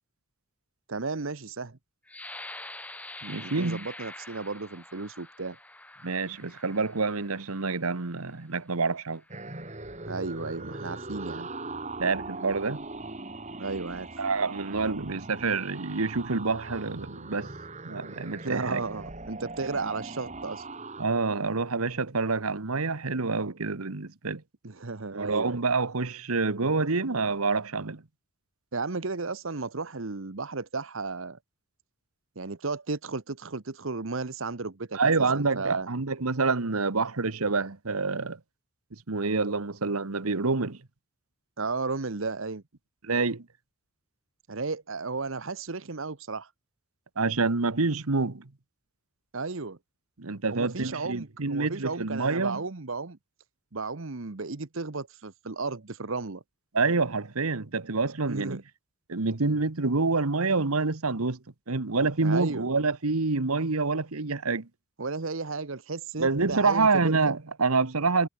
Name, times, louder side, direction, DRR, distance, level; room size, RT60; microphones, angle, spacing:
voice 1, 0.9-1.8 3.4-5.6 10.1-11.5 13.6-14.1 18.4-20.6 24.6-25.6 28.7-31.4 32.4-35.0 35.3-35.9 41.6-42.6 44.5-46.5 49.3-49.8 50.5-53.2 53.7-56.4 58.3-58.6 62.2-62.7 65.0-67.2, right 3 dB, 65° right, 1.1 m, -34 dB
sound 1, 2.1-7.7 8.4-8.5 9.0-9.5, left 2 dB, 5° left, 1.6 m, -45 dB
voice 2, 3.2-3.8 6.0-9.2 12.0-12.8 14.2-17.5 17.8-18.8 21.0-24.4 25.1-28.0 34.9-38.4 38.9-40.8 43.0-43.4 47.2-48.5 50.2-52.6 56.7-58.6 59.1-61.4 61.7-64.7 66.2-68.3, right 4 dB, 85° right, 1.3 m, -27 dB
sound 2, 9.3-21.0, right 2 dB, 30° right, 2.6 m, -40 dB
head